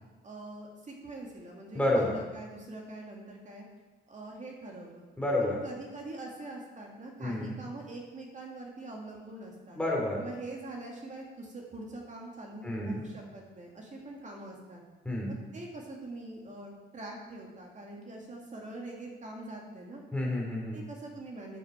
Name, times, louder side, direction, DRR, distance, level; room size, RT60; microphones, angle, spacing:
voice 1, 0.2-3.6 4.1-5.1 5.4-9.8 10.2-14.8 15.3-20.0 20.7-21.6, right 2 dB, 35° right, -1 dB, 2.2 m, -44 dB
voice 2, 1.7-2.2 5.2-5.6 7.2-7.6 9.8-10.2 12.6-13.0 15.0-15.4 20.1-20.8, left 1 dB, 5° left, -3 dB, 3.0 m, -29 dB
9.3 x 8.1 x 4.4 m, 1.3 s
cardioid pair, 90°, 20 cm